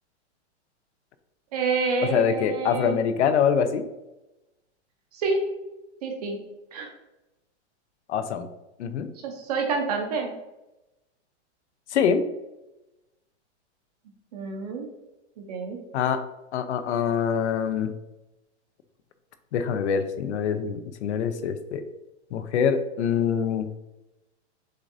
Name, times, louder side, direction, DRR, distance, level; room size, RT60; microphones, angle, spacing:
voice 1, 1.5-3.0 5.1-5.5 6.0-6.9 9.2-10.4 14.3-14.9 15.4-15.8, right 4 dB, 35° right, 2 dB, 0.6 m, -28 dB
voice 2, 2.1-3.8 8.1-8.5 8.8-9.1 11.9-12.2 15.9-16.2 16.5-17.9 19.5-21.8 22.3-23.7, left 7 dB, 75° left, 10 dB, 0.6 m, -24 dB
6.4 x 2.5 x 2.6 m, 0.97 s
supercardioid pair, 170°, 35 cm